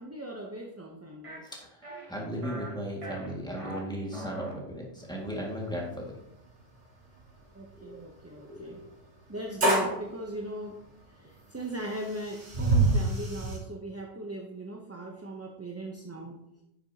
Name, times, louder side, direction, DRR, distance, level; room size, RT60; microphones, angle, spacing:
voice 1, 0.0-1.5 7.5-8.8 9.3-16.4, right 1 dB, 15° right, 1 dB, 0.6 m, -39 dB
sound 1, 1.2-1.4 1.8-2.1 2.4-2.7 3.0-3.8 4.1-4.5, right 1 dB, 35° right, 1.3 m, -40 dB
voice 2, 1.4-6.1 7.8-8.0 8.4-8.9, equal, 5° left, -2 dB, 1.8 m, -37 dB
sound 2, 5.3-5.4 5.7-5.8 6.5-6.6 8.7-8.8 9.6-10.0 11.2-11.3 11.8-13.6, right 2 dB, 80° right, 2.4 m, -26 dB
10.0 x 6.7 x 2.8 m, 0.83 s
omnidirectional pair, 1.0 m